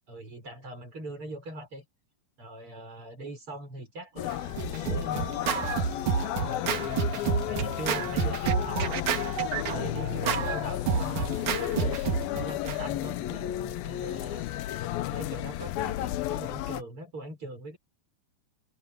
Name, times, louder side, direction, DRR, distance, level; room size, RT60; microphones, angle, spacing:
voice 1, 0.1-1.8 2.4-5.3 6.8-12.0 12.3-14.5 15.1-17.8, right 1 dB, 30° right, 6.6 m, -42 dB
sound 1, 4.2-16.8, left 13 dB, 75° left, 2.3 m, -33 dB
Scratching (performance technique), 4.3-12.8, right 7 dB, 55° right, 2.6 m, -30 dB
omnidirectional pair, 5.2 m